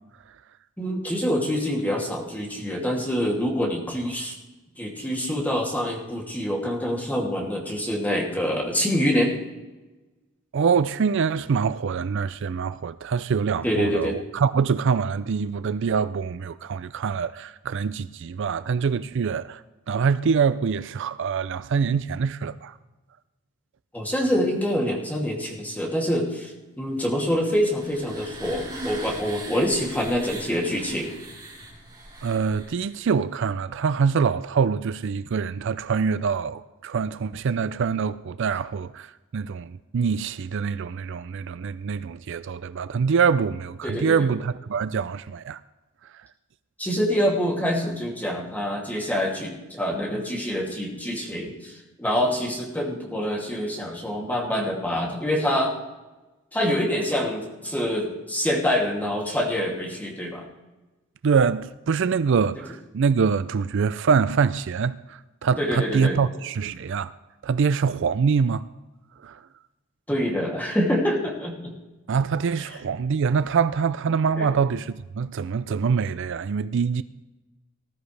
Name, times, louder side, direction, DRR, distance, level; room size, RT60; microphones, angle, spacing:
voice 1, 0.8-4.3 4.8-9.4 13.6-14.1 23.9-31.1 43.8-44.3 46.8-55.7 56.5-60.4 65.6-66.2 70.1-71.7 74.4-74.5, equal, 10° left, 2.6 m, -26 dB
voice 2, 10.5-22.8 32.2-45.6 46.0-46.3 61.2-67.1 67.4-68.7 69.2-69.5 72.1-77.0, right 6 dB, 60° right, 0.4 m, -24 dB
sound 1, 27.2-33.0, right 1 dB, 20° right, 6.0 m, -40 dB
19.5 x 12.5 x 3.3 m
head